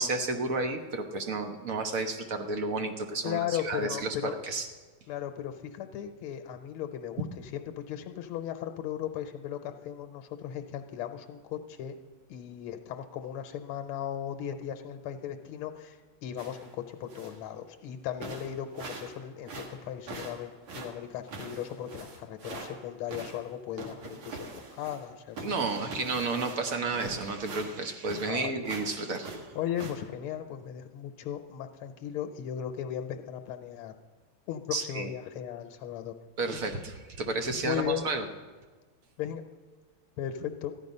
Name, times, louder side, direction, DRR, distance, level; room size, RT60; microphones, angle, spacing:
voice 1, 0.0-4.7 7.2-7.3 25.4-29.4 34.7-35.1 36.4-38.3, right 3 dB, 55° right, 6 dB, 1.0 m, -32 dB
voice 2, 3.2-4.4 5.1-11.9 12.3-19.5 19.8-25.4 28.2-28.5 29.5-33.9 34.5-36.1 36.5-36.6 37.6-38.0 39.2-39.4 40.2-40.7, left 10 dB, 80° left, 6 dB, 1.6 m, -37 dB
sound 1, 16.4-16.7 17.1-17.4 17.9-18.0 18.2-19.2 19.4-22.7 23.1-25.1 25.3-28.4 28.6-28.9 29.2-29.9, right 3 dB, 70° right, 2.4 m, -43 dB
14.0 x 11.0 x 5.4 m, 1.3 s
omnidirectional pair, 2.4 m